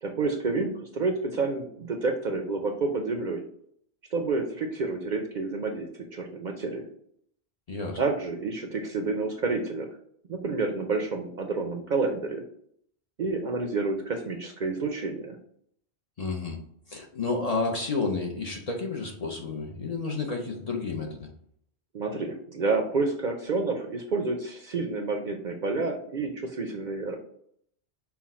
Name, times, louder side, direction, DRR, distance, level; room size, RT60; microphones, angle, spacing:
voice 1, 0.0-3.4 4.1-6.9 8.0-9.9 10.3-12.4 13.2-15.4 21.9-27.2, right 3 dB, 55° right, 3 dB, 0.6 m, -29 dB
voice 2, 7.7-8.0 16.2-16.6 16.9-21.3, left 3 dB, 40° left, 1 dB, 0.7 m, -31 dB
5.8 x 2.2 x 4.2 m, 0.67 s
omnidirectional pair, 1.1 m